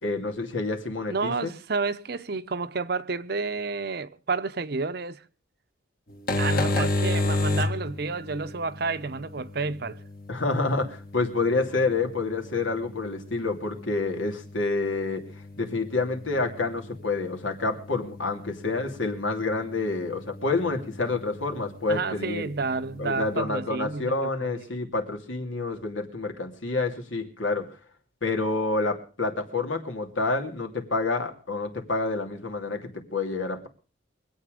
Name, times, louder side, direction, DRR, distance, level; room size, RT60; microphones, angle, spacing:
voice 1, 0.0-1.5 6.7-6.9 10.3-15.3 15.6-22.5 23.0-27.7 28.2-33.7, left 3 dB, 85° left, 2.8 m, -28 dB
voice 2, 1.1-5.2 6.4-10.0 21.9-24.5, right 4 dB, 55° right, 0.7 m, -30 dB
sound 1, 6.1-23.4, left 2 dB, 50° left, 1.9 m, -34 dB
24.0 x 8.7 x 5.1 m
head